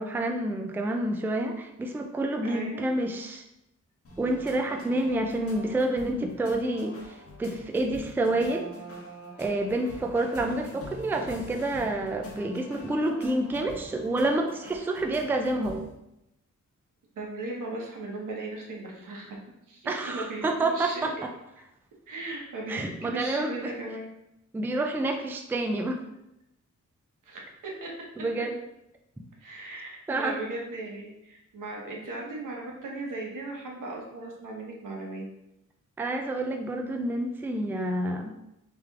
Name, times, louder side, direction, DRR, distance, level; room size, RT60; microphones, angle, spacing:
voice 1, 0.0-3.4 4.2-8.7 9.4-15.8 19.9-21.1 22.7-23.7 24.5-26.0 28.2-28.6 30.1-30.4 36.0-38.4, right 2 dB, 5° right, 3 dB, 0.3 m, -28 dB
voice 2, 2.4-2.8 17.1-19.4 19.7-21.0 22.1-24.1 27.2-27.5 27.8-27.9 29.4-35.3, right 2 dB, 90° right, -2 dB, 1.1 m, -37 dB
sound 1, 4.0-15.9, left 1 dB, 50° left, 1.0 m, -44 dB
3.4 x 3.2 x 3.6 m, 0.85 s
wide cardioid pair, 140°, 31 cm